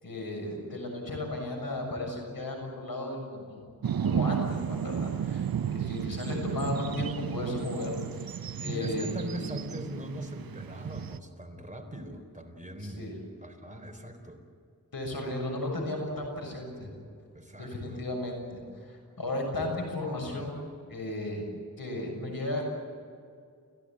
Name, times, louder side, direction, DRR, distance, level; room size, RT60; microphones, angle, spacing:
voice 1, 0.0-3.6 4.0-8.0 8.6-9.1 9.4-9.5 12.8-13.1 14.9-16.9 17.6-21.5 21.8-22.6, left 1 dB, 90° left, 1 dB, 7.0 m, -35 dB
sound 1, 3.8-11.2, right 8 dB, 80° right, 0.6 m, -33 dB
voice 2, 8.6-13.1 13.4-14.4 17.3-18.0, right 1 dB, 20° right, 4 dB, 4.0 m, -40 dB
29.5 x 16.0 x 9.0 m, 2.3 s
wide cardioid pair, 65°, 34 cm